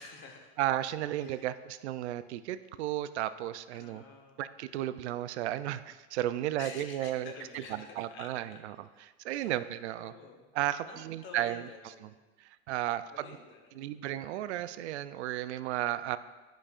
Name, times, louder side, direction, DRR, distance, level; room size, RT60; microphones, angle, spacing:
voice 1, 0.0-0.5 1.2-1.5 3.7-4.5 6.6-8.6 8.9-9.5 9.9-10.5 10.8-12.2 13.1-14.0, left 4 dB, 35° left, 3 dB, 1.1 m, -50 dB
voice 2, 0.6-4.0 4.4-8.9 9.2-10.1 10.5-11.7 12.0-12.1 12.4-13.3 13.8-16.2, right 13 dB, 85° right, 13 dB, 0.5 m, -34 dB
11.0 x 5.1 x 2.5 m, 1.2 s
supercardioid pair, 125°, 33 cm